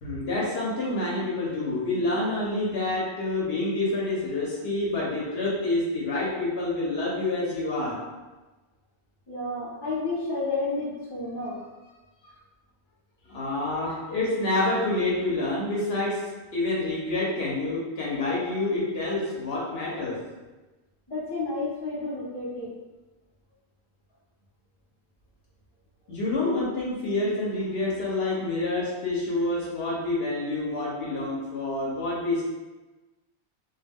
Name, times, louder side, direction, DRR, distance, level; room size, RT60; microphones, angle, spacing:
voice 1, 0.0-8.0 13.3-16.2 16.5-20.2 26.1-32.5, left 2 dB, 55° left, -6 dB, 0.8 m, -28 dB
voice 2, 9.3-11.6 21.1-22.7, left 3 dB, 30° left, -7 dB, 0.5 m, -31 dB
2.3 x 2.2 x 3.4 m, 1.2 s
omnidirectional pair, 1.4 m